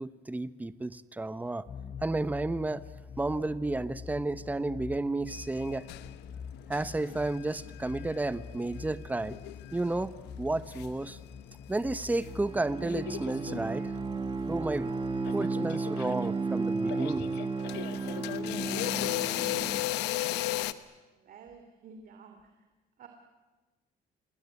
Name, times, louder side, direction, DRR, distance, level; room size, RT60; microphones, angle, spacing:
voice 1, 0.0-1.6 2.0-2.8 3.2-5.9 6.7-9.4 9.7-10.1 10.4-11.2 11.7-13.9 14.5-14.9 15.3-17.3, right 2 dB, 10° right, 14 dB, 1.0 m, -32 dB
sound 1, 1.7-15.3, left 6 dB, 45° left, 3.5 m, -46 dB
sound 2, 5.3-12.3 12.6-14.0 14.9-15.0 15.2-20.7, left 15 dB, 90° left, 1.2 m, -36 dB
Bowed string instrument, 12.2-19.9, right 4 dB, 30° right, 1.7 m, -33 dB
voice 2, 21.2-22.4 23.0-23.1, right 5 dB, 55° right, 5 dB, 3.1 m, -50 dB
28.0 x 20.5 x 9.7 m, 1.2 s
cardioid pair, 110°, 17 cm